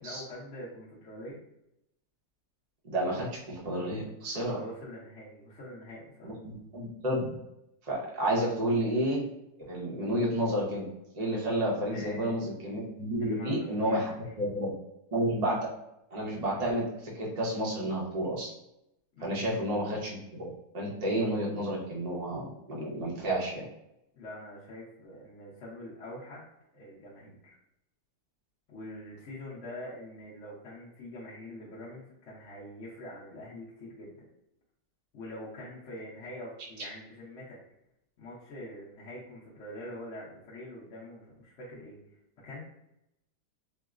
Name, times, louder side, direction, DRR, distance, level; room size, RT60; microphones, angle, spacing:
voice 1, 0.0-1.4 4.4-6.3 11.9-12.3 13.2-14.2 19.1-19.5 24.1-26.5 26.7-27.6 28.7-34.3 35.1-37.6 38.2-42.6, left 1 dB, 55° left, -7 dB, 0.9 m, -44 dB
voice 2, 2.8-4.6 6.2-7.3 7.8-9.2 9.7-10.9 11.1-14.7 15.1-15.6 16.1-18.5 19.2-20.1 20.4-20.5 20.7-23.6, right 1 dB, 40° right, -3 dB, 0.6 m, -30 dB
4.5 x 2.0 x 2.4 m, 0.84 s
omnidirectional pair, 1.8 m